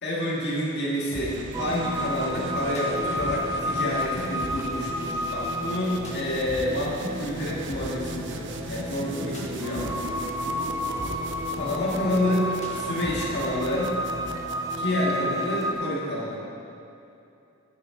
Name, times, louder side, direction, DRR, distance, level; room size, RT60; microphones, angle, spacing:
voice 1, 0.0-10.0 11.6-14.0 14.8-16.4, left 1 dB, 55° left, -5 dB, 2.2 m, -28 dB
sound 1, 1.0-15.3, right 4 dB, 60° right, 0.5 m, -42 dB
sound 2, 1.1-14.3, equal, 35° left, 1.5 m, -41 dB
sound 3, 1.5-15.7, equal, 15° right, 0.6 m, -32 dB
9.9 x 9.5 x 4.0 m, 2.7 s
head